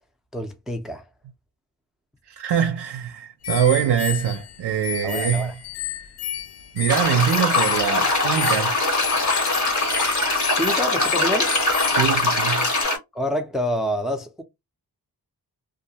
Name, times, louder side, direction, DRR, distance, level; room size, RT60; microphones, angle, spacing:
voice 1, 0.3-1.1 5.0-5.5 10.5-11.5 13.1-14.4, equal, ahead, 0.5 m, -27 dB
voice 2, 2.3-5.5 5.9-6.0 6.7-8.8 11.9-12.7, right 9 dB, 75° right, 0.6 m, -23 dB
sound 1, 3.4-12.8, left 10 dB, 75° left, 0.5 m, -32 dB
sound 2, 6.9-13.0, left 2 dB, 45° left, 1.3 m, -22 dB
2.4 x 2.2 x 2.7 m
wide cardioid pair, 90°, 41 cm